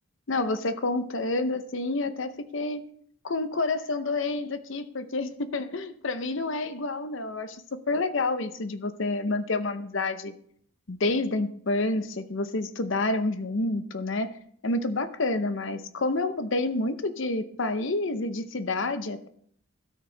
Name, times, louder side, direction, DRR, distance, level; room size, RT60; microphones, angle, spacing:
voice 1, 0.3-2.8 3.2-10.3 10.9-14.3 14.6-19.3, left 2 dB, 60° left, 11 dB, 0.7 m, -29 dB
16.5 x 6.5 x 3.3 m, 0.64 s
head